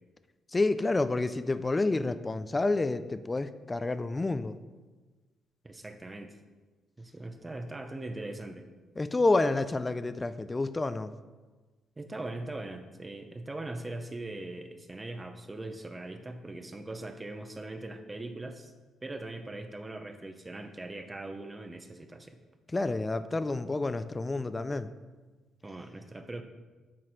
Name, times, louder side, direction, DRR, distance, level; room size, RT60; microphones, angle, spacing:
voice 1, 0.5-4.6 9.0-11.1 22.7-24.9, left 2 dB, 20° left, 13 dB, 0.3 m, -29 dB
voice 2, 5.6-6.3 7.0-8.7 12.0-18.7 19.0-22.4 25.6-26.4, right 2 dB, 20° right, 7 dB, 0.7 m, -40 dB
7.5 x 4.1 x 4.4 m, 1.3 s
cardioid pair, 90°, 0 cm